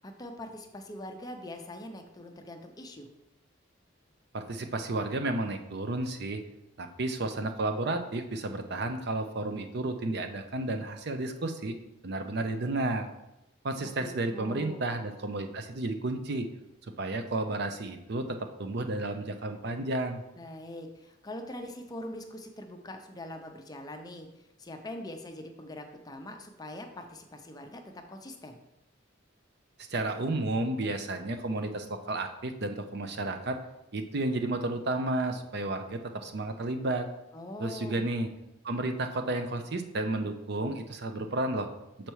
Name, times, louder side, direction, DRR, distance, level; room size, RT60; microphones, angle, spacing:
voice 1, 0.0-3.1 13.8-14.9 20.3-28.6 37.3-38.1, left 1 dB, 20° left, 4 dB, 0.6 m, -43 dB
voice 2, 4.3-6.4 6.8-11.8 12.0-13.1 13.6-16.5 17.0-20.2 29.9-33.6 33.9-37.1 37.6-38.3 38.6-41.7, right 2 dB, 55° right, 6 dB, 0.6 m, -32 dB
6.8 x 4.4 x 4.7 m, 0.90 s
head